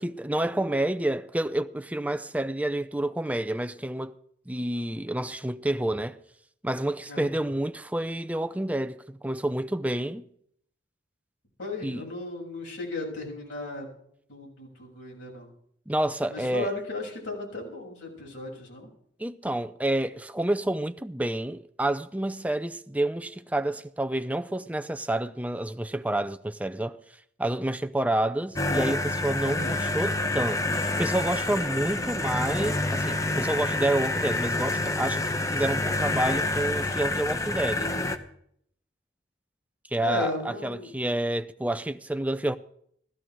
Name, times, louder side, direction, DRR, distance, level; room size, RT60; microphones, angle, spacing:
voice 1, 0.0-4.1 4.5-6.2 6.6-10.3 11.8-12.1 15.9-16.7 19.2-27.0 27.4-35.2 35.5-37.9 39.9-42.6, right 1 dB, 10° right, 0.5 m, -29 dB
voice 2, 11.6-13.9 14.3-15.5 16.3-18.9 29.5-29.8 40.0-40.9, left 2 dB, 90° left, 7.3 m, -35 dB
sound 1, 28.6-38.2, left 2 dB, 15° left, 1.0 m, -28 dB
15.0 x 14.0 x 4.7 m
head